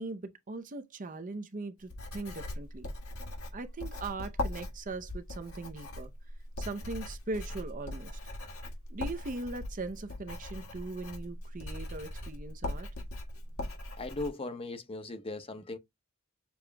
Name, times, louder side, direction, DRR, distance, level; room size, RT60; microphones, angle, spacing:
voice 1, 0.0-2.9 3.5-6.1 6.6-8.2 8.9-12.9, right 3 dB, 35° right, 0.5 m, -40 dB
Writing, 1.9-14.3, left 1 dB, 75° left, 1.7 m, -40 dB
voice 2, 14.0-15.8, left 2 dB, 25° left, 0.7 m, -38 dB
6.9 x 2.9 x 2.2 m
head